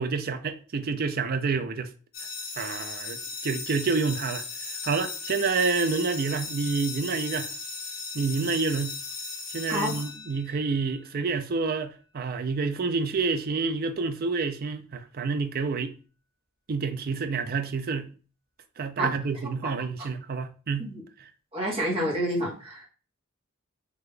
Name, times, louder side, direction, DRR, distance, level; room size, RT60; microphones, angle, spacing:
voice 1, 0.0-1.9 2.6-7.5 8.1-9.0 9.5-15.9 16.7-18.1 18.8-20.9, right 4 dB, 45° right, 0.4 m, -28 dB
sound 1, 2.1-10.8, left 4 dB, 50° left, 1.5 m, -37 dB
voice 2, 9.7-10.0 19.0-19.1 19.6-19.7 20.8-21.0 21.5-22.9, equal, 30° right, 1.5 m, -28 dB
3.6 x 2.8 x 3.3 m
head